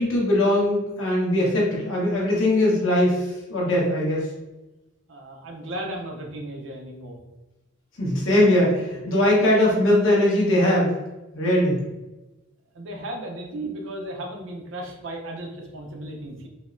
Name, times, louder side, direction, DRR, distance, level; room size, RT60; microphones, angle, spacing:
voice 1, 0.0-4.3 8.0-10.9 11.3-11.8, left 1 dB, 70° left, -4 dB, 1.1 m, -20 dB
voice 2, 5.1-7.2 12.7-16.5, right 1 dB, 65° right, 1 dB, 0.6 m, -35 dB
4.0 x 2.0 x 2.5 m, 1.0 s
head